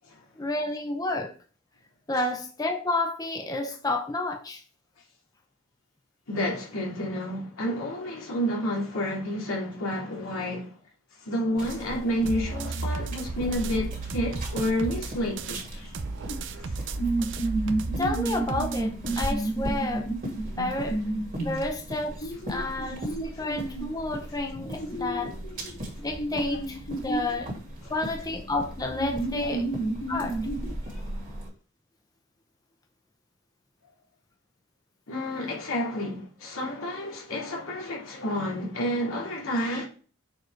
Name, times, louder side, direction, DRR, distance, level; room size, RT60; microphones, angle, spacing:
voice 1, 0.4-1.3 2.1-4.6 18.0-20.1 20.6-21.0 21.4-25.3 26.0-27.5 27.9-29.7 30.1-30.4, left 2 dB, 15° left, 0.6 m, -30 dB
voice 2, 6.3-10.7 11.2-15.9 16.6-16.8 22.6-22.7 27.8-28.0 29.4-29.5 35.1-39.9, equal, 80° left, 2.5 m, -30 dB
sound 1, 11.5-31.5, right 1 dB, 40° right, 2.5 m, -38 dB
sound 2, 12.3-15.6 15.9-19.3, right 4 dB, 60° right, 0.6 m, -34 dB
sound 3, 16.3-16.4 17.0-23.9 24.5-27.4 28.3-28.4 28.8-30.7, right 2 dB, 65° left, 2.4 m, -31 dB
6.4 x 4.7 x 3.2 m
head